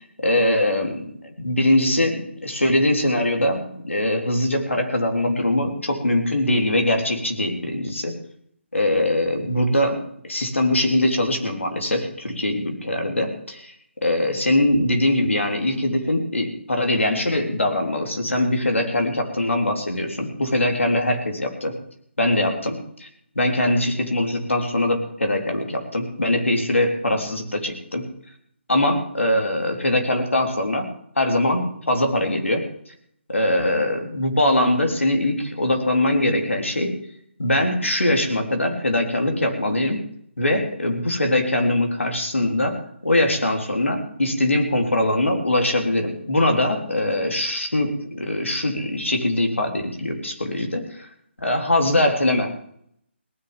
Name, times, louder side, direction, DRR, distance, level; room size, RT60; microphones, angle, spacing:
voice 1, 0.2-8.2 8.7-10.0 10.2-13.7 14.0-21.8 22.2-23.1 23.3-28.1 28.7-30.9 31.1-32.7 33.3-36.9 37.4-40.0 40.4-51.1 51.4-52.5, left 1 dB, 85° left, 4 dB, 3.5 m, -22 dB
18.5 x 6.3 x 9.7 m, 0.66 s
figure-of-eight pair, 150°, 7 cm